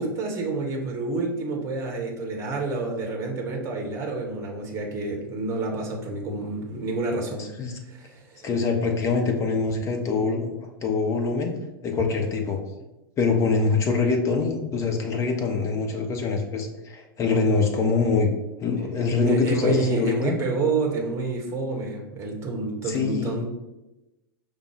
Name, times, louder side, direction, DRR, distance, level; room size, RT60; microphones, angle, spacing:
voice 1, 0.0-7.4 7.9-8.5 19.3-23.5, right 3 dB, 25° right, 0 dB, 0.9 m, -29 dB
voice 2, 8.4-10.5 10.8-11.5 11.8-12.6 13.2-18.3 18.6-20.4 22.8-23.5, left 4 dB, 25° left, 3 dB, 0.7 m, -24 dB
5.2 x 2.1 x 4.7 m, 0.99 s
figure-of-eight pair, 95°, 12 cm